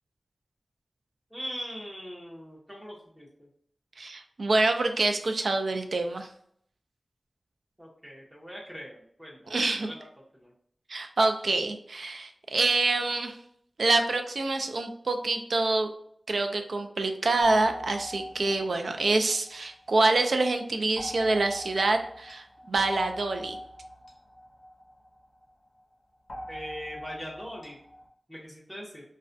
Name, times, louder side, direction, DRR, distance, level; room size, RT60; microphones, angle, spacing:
voice 1, 1.3-3.5 7.8-10.0 10.3-10.5 26.5-27.8 28.3-29.0, equal, 10° right, -4 dB, 0.7 m, -41 dB
voice 2, 4.0-6.3 9.5-9.9 10.9-13.4 13.8-15.9 16.3-23.6, right 2 dB, 80° right, 6 dB, 0.3 m, -26 dB
sound 1, 17.4-20.2 21.0-25.5 26.3-28.1, equal, 60° left, 0.5 m, -43 dB
2.3 x 2.1 x 2.5 m, 0.65 s
wide cardioid pair, 65°, 0 cm